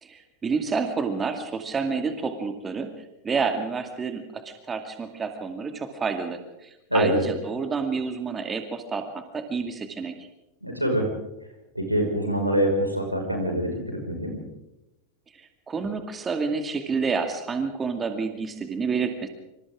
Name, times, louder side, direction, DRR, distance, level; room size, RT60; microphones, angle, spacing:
voice 1, 0.0-2.9 3.2-10.2 15.3-19.3, right 5 dB, 20° right, 6 dB, 2.3 m, -29 dB
voice 2, 6.9-7.2 10.6-11.1 11.7-14.3, equal, 90° right, 2 dB, 5.6 m, -24 dB
27.0 x 26.5 x 3.7 m, 0.94 s
figure-of-eight pair, 90°, 0 cm